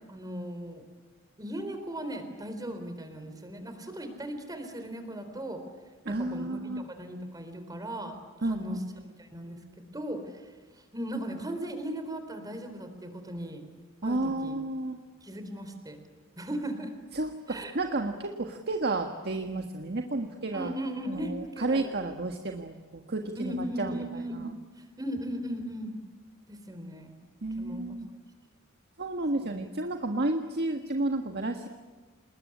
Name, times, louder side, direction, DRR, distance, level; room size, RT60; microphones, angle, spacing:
voice 1, 0.1-0.8 1.4-5.6 6.1-8.8 9.2-10.2 10.9-13.6 14.0-14.6 15.2-16.0 16.4-16.9 17.5-18.0 20.5-22.1 23.4-24.5 25.0-26.0 26.5-27.2 27.6-27.9 29.4-29.6, right 1 dB, 20° right, 7 dB, 3.9 m, -37 dB
voice 2, 6.0-6.8 8.4-8.8 14.0-15.0 17.1-20.7 21.1-24.0 27.4-28.1 29.0-31.7, right 2 dB, 55° right, 4 dB, 1.6 m, -31 dB
27.5 x 21.0 x 9.9 m, 1.3 s
head